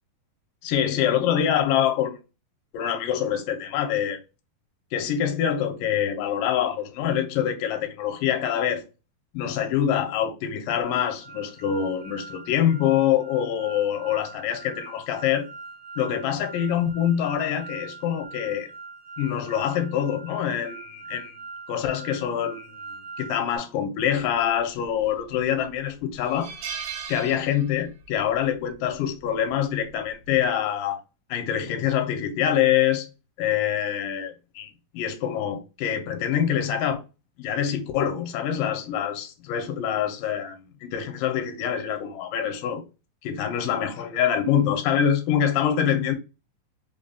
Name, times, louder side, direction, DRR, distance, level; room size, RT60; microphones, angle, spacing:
voice 1, 0.6-2.2 2.7-4.2 4.9-8.8 9.3-15.5 16.0-18.7 19.2-21.4 21.7-26.5 27.1-31.0 31.3-33.1 33.4-37.0 37.4-42.8 43.2-46.1, left 9 dB, 80° left, 2.2 m, -25 dB
sound 1, 10.8-23.6, right 4 dB, 60° left, 0.4 m, -43 dB
sound 2, 24.8-25.4 25.7-25.8 26.2-28.1 28.3-28.6 29.8-30.1, right 7 dB, 90° right, 2.4 m, -37 dB
5.1 x 2.6 x 2.2 m
omnidirectional pair, 3.9 m